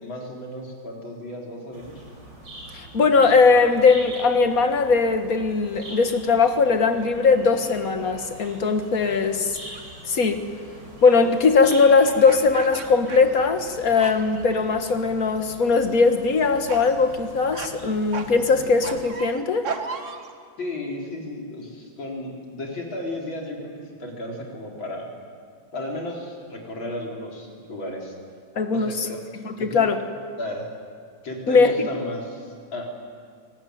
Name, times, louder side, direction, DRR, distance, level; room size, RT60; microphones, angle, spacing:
voice 1, 0.0-2.0 20.6-23.7 24.0-25.1 25.7-28.1 28.7-29.2 29.6-29.9 30.4-30.7 31.2-33.0, left 1 dB, 85° left, 0 dB, 4.8 m, -34 dB
sound 1, 1.7-19.0, right 1 dB, 60° right, 5.5 m, -43 dB
voice 2, 2.7-9.6 10.1-10.4 11.0-19.7 28.6-29.1 29.4-30.0 31.5-31.9, left 4 dB, 50° left, 7 dB, 2.0 m, -19 dB
sound 2, 9.7-10.0 12.1-13.7 14.0-14.5 14.9-15.4 15.7-16.0 16.7-16.9 17.5-17.7 18.1-20.3, right 5 dB, 40° right, 1.7 m, -35 dB
24.5 x 19.0 x 9.5 m, 2.1 s
omnidirectional pair, 2.1 m